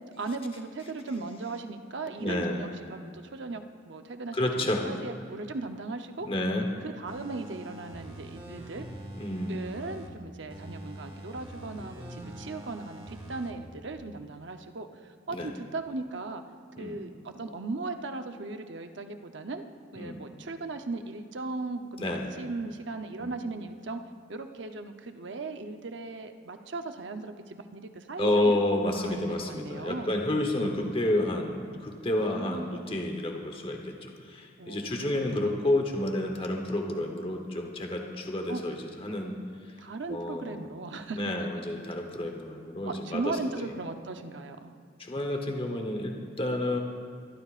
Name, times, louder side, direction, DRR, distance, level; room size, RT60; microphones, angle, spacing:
voice 1, 0.2-6.3 6.8-8.9 9.5-16.4 16.8-19.6 19.9-24.0 24.3-28.6 29.0-30.1 32.2-33.2 34.6-35.7 38.5-38.7 39.8-41.2 42.9-44.7, right 3 dB, 65° right, 7 dB, 0.8 m, -38 dB
voice 2, 2.2-2.7 4.3-4.9 6.2-6.7 9.2-9.6 15.3-15.5 16.8-17.0 20.0-20.2 22.0-22.3 23.2-23.3 28.2-39.3 39.6-39.8 40.1-40.7 41.2-43.4 45.0-46.8, left 1 dB, 30° left, 3 dB, 1.0 m, -30 dB
sound 1, 7.1-10.1 10.5-13.5 13.9-14.0, right 1 dB, 25° right, 1.6 m, -44 dB
24.0 x 13.0 x 2.5 m, 2.3 s
head